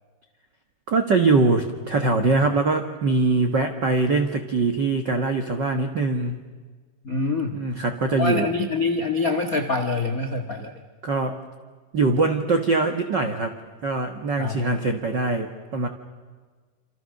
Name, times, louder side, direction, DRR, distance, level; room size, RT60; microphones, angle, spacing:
voice 1, 0.9-6.4 7.5-8.5 11.0-11.4 11.9-13.6 13.8-15.9, right 3 dB, 75° right, 5 dB, 1.0 m, -22 dB
voice 2, 7.0-7.6 8.2-10.7 14.4-14.6, left 3 dB, 70° left, 6 dB, 0.8 m, -25 dB
28.5 x 27.0 x 6.6 m, 1.4 s
omnidirectional pair, 4.5 m